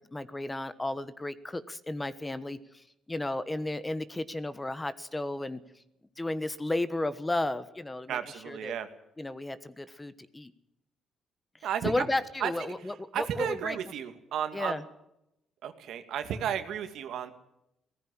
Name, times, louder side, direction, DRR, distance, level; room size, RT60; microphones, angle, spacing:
voice 1, 0.0-5.6 6.2-8.2 8.5-8.7 9.2-10.5 11.8-13.8 14.5-14.8, left 2 dB, 15° left, 14 dB, 1.3 m, -33 dB
voice 2, 8.1-8.9 11.6-11.9 12.4-12.7 13.1-14.8 15.6-17.3, right 9 dB, 80° right, 8 dB, 2.2 m, -33 dB
18.5 x 15.0 x 10.0 m, 0.85 s
cardioid pair, 90°, 0 cm